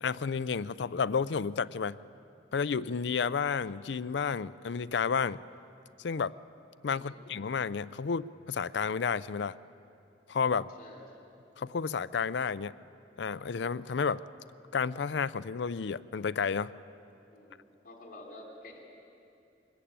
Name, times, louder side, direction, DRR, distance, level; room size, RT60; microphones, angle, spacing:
voice 1, 0.0-2.0 2.5-5.4 6.0-6.3 6.8-9.6 10.3-10.7 11.6-12.7 13.2-14.2 14.7-16.7, left 6 dB, 75° left, 17 dB, 0.5 m, -31 dB
voice 2, 10.8-11.2 17.3-18.8, left 1 dB, 50° left, 1 dB, 3.3 m, -50 dB
23.0 x 20.0 x 8.8 m, 2.7 s
head